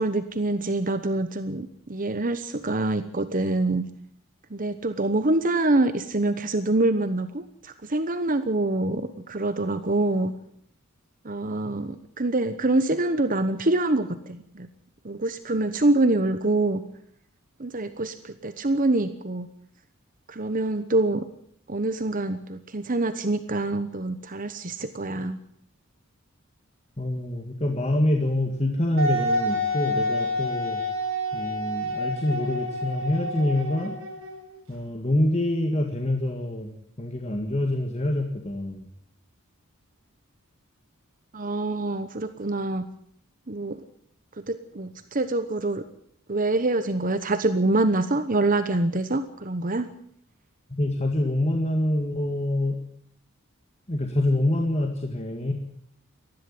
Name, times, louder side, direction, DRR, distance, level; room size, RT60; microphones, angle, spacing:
voice 1, 0.0-3.9 4.5-10.3 11.2-14.7 15.0-16.8 17.6-19.5 20.3-21.3 21.7-25.4 41.3-42.9 43.5-43.8 44.5-45.8 46.3-49.9, right 2 dB, 40° right, 10 dB, 1.0 m, -25 dB
voice 2, 27.0-30.8 31.3-33.9 34.7-36.7 37.0-38.9 50.8-52.8 53.9-55.5, left 1 dB, 30° left, 3 dB, 1.9 m, -26 dB
Wind instrument woodwind instrument, 29.0-34.6, left 1 dB, 65° right, 7.0 m, -28 dB
19.5 x 14.0 x 9.7 m, 0.66 s
head